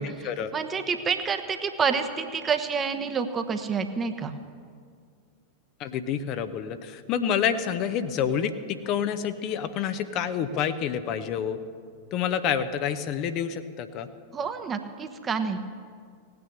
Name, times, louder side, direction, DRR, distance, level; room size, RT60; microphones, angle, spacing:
voice 1, 0.0-0.5 5.8-11.6 12.1-14.1, left 8 dB, 40° left, 10 dB, 0.8 m, -28 dB
voice 2, 0.5-4.3 14.3-15.6, right 5 dB, 20° right, 7 dB, 1.1 m, -28 dB
17.5 x 9.5 x 6.8 m, 2.1 s
figure-of-eight pair, 90°, 0 cm